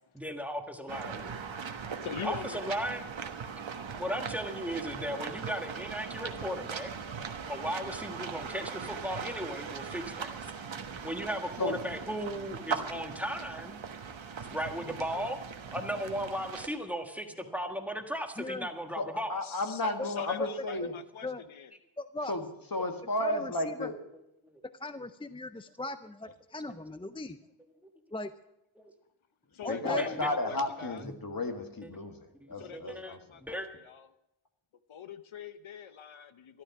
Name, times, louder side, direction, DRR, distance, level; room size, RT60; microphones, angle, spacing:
voice 1, 0.1-1.5 2.2-3.0 4.0-6.9 7.5-10.4 11.0-13.8 14.5-15.4 15.7-19.3 24.4-24.6 28.8-28.9 29.9-30.3 31.0-31.1 32.4-33.1 33.4-33.7, equal, 5° right, 5 dB, 1.5 m, -36 dB
sound 1, 0.9-16.7, right 6 dB, 75° right, 1.3 m, -40 dB
voice 2, 2.0-2.9 4.5-4.6 14.3-14.4 19.4-21.7 29.5-31.0 32.6-34.1 34.9-36.6, left 8 dB, 80° left, 11 dB, 0.8 m, -43 dB
voice 3, 18.4-18.7 20.0-20.1 20.4-20.5 20.8-20.9 21.2-21.4 22.0-22.3 23.2-23.9 24.8-27.4 28.1-28.3 29.6-30.2, left 2 dB, 10° left, 11 dB, 0.4 m, -38 dB
voice 4, 19.0-21.0 22.2-24.0 29.7-33.4, left 2 dB, 45° left, 5 dB, 1.7 m, -33 dB
13.5 x 12.0 x 5.9 m, 0.86 s
wide cardioid pair, 80°, 47 cm